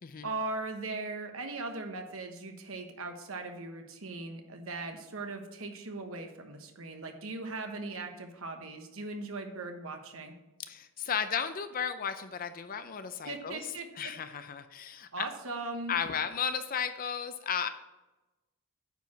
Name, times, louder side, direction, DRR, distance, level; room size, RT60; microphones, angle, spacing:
voice 1, 0.2-10.3 13.2-14.1 15.1-16.0, right 3 dB, 70° right, 5 dB, 1.2 m, -39 dB
voice 2, 10.7-13.6 14.0-15.2 15.9-17.7, left 7 dB, 40° left, 10 dB, 0.5 m, -34 dB
9.2 x 4.8 x 5.8 m, 1.0 s
head